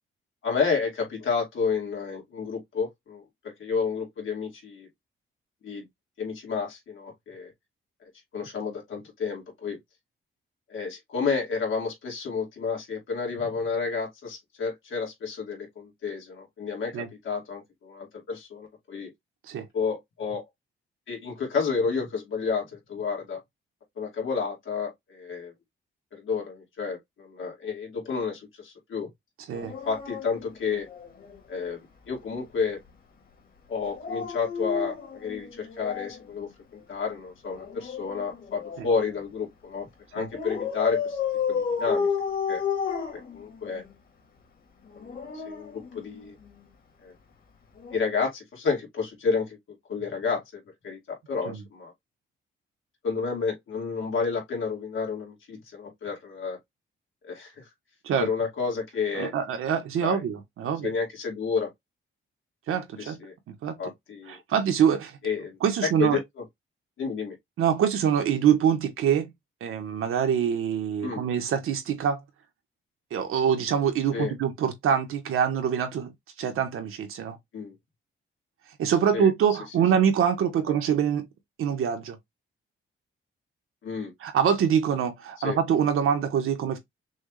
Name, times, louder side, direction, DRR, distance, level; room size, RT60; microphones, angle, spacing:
voice 1, 0.4-4.9 5.6-5.9 6.2-7.5 8.0-9.8 10.7-19.1 19.7-20.4 21.1-23.4 24.0-25.5 26.1-29.1 29.8-30.9 31.5-31.8 32.1-32.8 33.7-39.9 40.1-41.2 41.5-42.1 42.5-42.6 43.1-43.8 44.9-46.3 47.0-47.1 47.9-49.6 49.9-51.9 53.0-56.6 57.2-57.7 58.2-59.3 60.0-60.2 60.8-61.7 63.0-63.3 63.8-64.4 65.2-66.2 67.0-67.3 71.0-71.3 74.1-74.3 77.5-77.8 79.1-79.3 80.7-80.8 83.8-84.1 85.4-85.6, left 5 dB, 70° left, 2.5 m, -30 dB
Dog, 29.5-31.4 33.8-36.2 37.5-39.2 40.3-43.9 44.9-46.5 47.8-48.0, left 6 dB, 45° left, 1.8 m, -32 dB
voice 2, 59.1-60.9 62.7-63.2 63.5-63.8 64.3-65.2 65.6-66.2 67.6-69.3 69.6-72.2 73.1-76.1 76.4-77.4 78.8-81.2 81.6-82.2 84.2-86.8, right 8 dB, 80° right, 1.4 m, -25 dB
6.2 x 2.5 x 3.2 m
cardioid pair, 135°, 21 cm